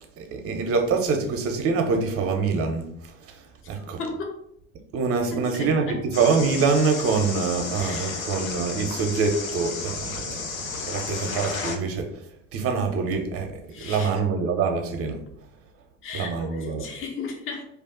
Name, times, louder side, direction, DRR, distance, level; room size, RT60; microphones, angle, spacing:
voice 1, 0.2-2.9 3.2-4.0 4.9-12.1 12.5-15.2 16.1-16.9, right 4 dB, 35° right, 0.6 m, -25 dB
voice 2, 3.6-4.4 5.3-6.0 7.8-8.2 13.7-14.1 16.0-17.6, left 4 dB, 30° left, 0.7 m, -36 dB
sound 1, 6.1-11.8, left 4 dB, 90° left, 0.5 m, -33 dB
2.5 x 2.3 x 3.7 m
figure-of-eight pair, 70°, 40 cm